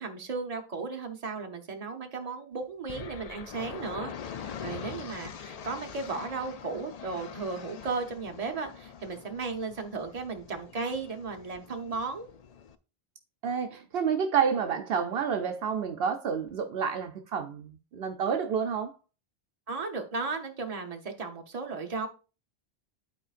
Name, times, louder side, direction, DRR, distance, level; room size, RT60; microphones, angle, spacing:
voice 1, 0.0-12.3 19.7-22.1, right 4 dB, 40° right, 1.0 m, -35 dB
sound 1, 2.9-12.8, left 7 dB, 50° left, 0.5 m, -44 dB
voice 2, 13.4-19.0, right 7 dB, 75° right, 0.9 m, -29 dB
11.5 x 4.4 x 2.5 m
omnidirectional pair, 1.0 m